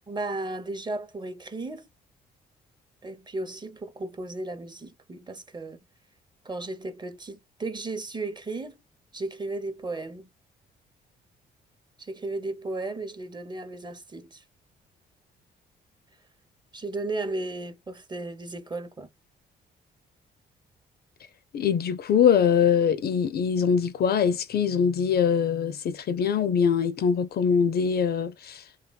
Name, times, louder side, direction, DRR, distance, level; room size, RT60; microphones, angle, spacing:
voice 1, 0.1-1.9 3.0-5.8 6.4-8.8 9.1-10.3 12.0-14.4 16.7-19.1, right 2 dB, 20° right, 0.7 m, -35 dB
voice 2, 21.5-28.6, left 7 dB, 55° left, 0.4 m, -23 dB
2.9 x 2.2 x 2.3 m
supercardioid pair, 65°, 20 cm